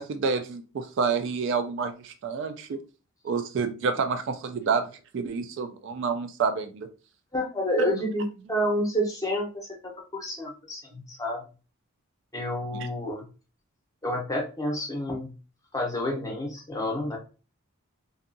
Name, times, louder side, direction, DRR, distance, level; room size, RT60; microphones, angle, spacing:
voice 1, 0.0-2.8 3.2-4.9 5.1-6.9 12.7-12.9, right 5 dB, 55° right, 8 dB, 0.3 m, -28 dB
voice 2, 7.3-9.8 10.1-11.4 12.3-13.2 14.0-15.3 15.7-17.2, equal, 15° left, 0 dB, 0.7 m, -29 dB
2.7 x 2.3 x 2.6 m, 0.34 s
head